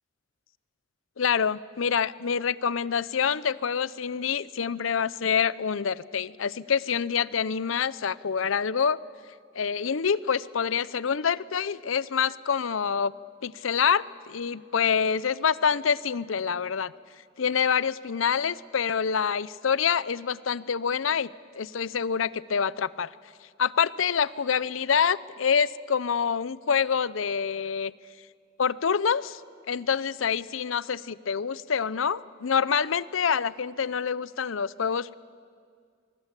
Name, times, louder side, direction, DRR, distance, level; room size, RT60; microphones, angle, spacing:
voice 1, 1.2-9.0 9.6-13.1 13.4-16.9 17.4-23.1 23.6-27.9 28.6-29.4 29.7-35.2, left 6 dB, 85° left, 19 dB, 0.6 m, -26 dB
24.0 x 23.5 x 8.2 m, 2.1 s
head